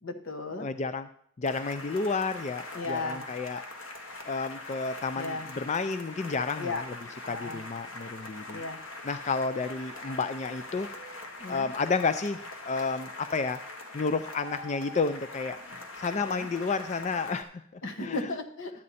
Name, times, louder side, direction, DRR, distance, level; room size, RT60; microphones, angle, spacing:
voice 1, 0.0-0.7 2.7-3.3 5.1-5.5 6.6-6.8 7.3-7.6 8.5-8.8 11.4-11.7 16.2-16.5 17.8-18.8, left 2 dB, 70° left, 7 dB, 1.2 m, -35 dB
voice 2, 0.6-1.1 1.4-3.6 4.2-6.8 7.2-8.6 9.0-10.9 11.5-12.4 12.7-13.6 13.9-15.6 16.0-18.3, left 4 dB, 35° left, 11 dB, 0.4 m, -31 dB
sound 1, 1.4-17.4, left 2 dB, 90° left, 1.6 m, -42 dB
12.0 x 8.6 x 4.1 m, 0.65 s
head